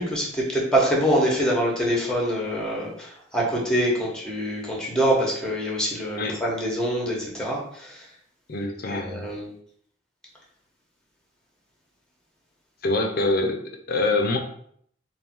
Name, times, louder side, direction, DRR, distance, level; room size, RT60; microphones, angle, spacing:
voice 1, 0.0-8.1 8.9-9.5, equal, 5° left, -3 dB, 1.1 m, -25 dB
voice 2, 8.5-9.3 12.8-14.4, left 2 dB, 55° left, 3 dB, 0.6 m, -25 dB
3.4 x 2.3 x 4.4 m, 0.64 s
head